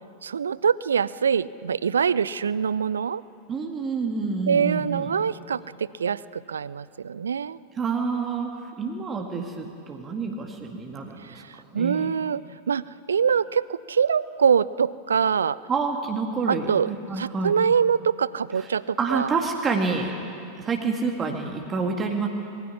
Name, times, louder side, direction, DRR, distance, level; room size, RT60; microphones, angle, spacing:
voice 1, 0.2-3.2 4.5-7.6 11.2-12.4 12.7-12.8 13.1-15.6 16.5-16.9 17.2-19.3, right 7 dB, 70° right, 19 dB, 0.5 m, -24 dB
voice 2, 3.5-5.2 7.8-8.5 8.8-11.4 11.7-12.1 15.7-17.6 18.6-18.7 19.0-20.1 20.5-22.3, right 4 dB, 20° right, 2 dB, 1.9 m, -28 dB
21.0 x 16.0 x 9.8 m, 2.7 s
figure-of-eight pair, 90°, 0 cm